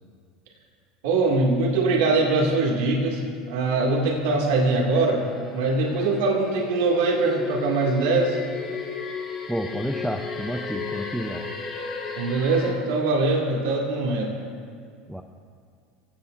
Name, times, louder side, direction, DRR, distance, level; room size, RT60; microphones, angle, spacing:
voice 1, 1.0-3.2 3.5-5.2 5.5-8.4 12.2-14.3, right 3 dB, 85° right, -1 dB, 2.3 m, -22 dB
sound 1, 3.8-12.7, left 4 dB, 20° left, 3.0 m, -35 dB
voice 2, 9.5-11.5 15.1-15.2, equal, ahead, 5 dB, 0.6 m, -30 dB
28.5 x 16.5 x 2.6 m, 2.2 s
cardioid pair, 155°, 0 cm